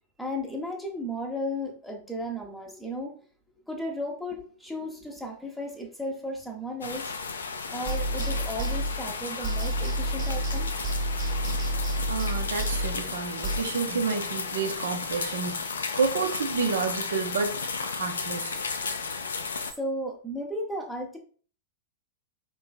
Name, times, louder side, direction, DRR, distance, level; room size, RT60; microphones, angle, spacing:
voice 1, 0.2-3.2 3.7-7.1 7.7-10.7 19.8-21.2, equal, ahead, 0.7 m, -34 dB
sound 1, 6.8-19.7, left 4 dB, 70° left, 0.4 m, -34 dB
sound 2, 7.9-9.2 9.4-13.6, right 1 dB, 35° right, 0.8 m, -30 dB
voice 2, 12.1-17.6 17.8-18.6, right 5 dB, 65° right, 0.5 m, -30 dB
4.6 x 3.1 x 2.2 m
figure-of-eight pair, 90°, 0 cm